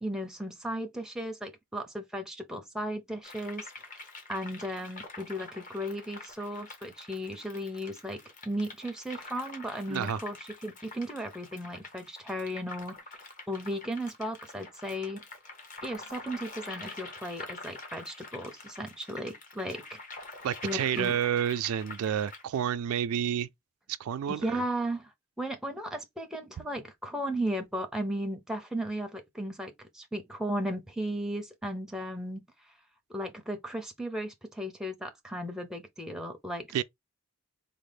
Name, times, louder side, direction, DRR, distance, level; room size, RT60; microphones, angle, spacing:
voice 1, 0.0-4.0 4.3-13.0 13.5-15.2 15.8-20.0 20.6-21.2 24.3-25.1 25.4-32.5 33.1-36.8, equal, ahead, 0.5 m, -35 dB
sound 1, 3.2-22.4, left 3 dB, 35° left, 0.8 m, -46 dB
voice 2, 20.4-23.5 24.0-24.6 36.7-36.8, right 9 dB, 75° right, 0.3 m, -29 dB
4.0 x 2.0 x 3.3 m
head